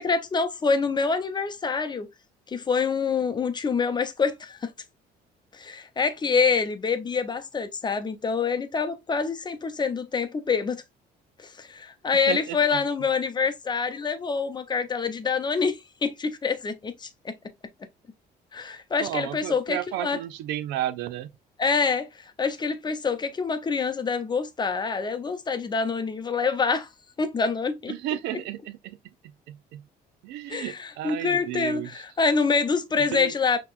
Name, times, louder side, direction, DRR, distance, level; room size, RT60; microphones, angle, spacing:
voice 1, 0.0-2.1 2.5-4.7 5.5-10.8 11.4-17.3 18.5-20.2 21.6-26.9 27.2-27.9 30.5-33.6, left 5 dB, 25° left, 0.6 m, -26 dB
voice 2, 12.3-12.8 19.0-21.3 27.9-29.0 29.2-29.9 30.2-32.0 33.0-33.3, right 13 dB, 90° right, 0.5 m, -33 dB
5.7 x 3.0 x 2.4 m
cardioid pair, 110°, 17 cm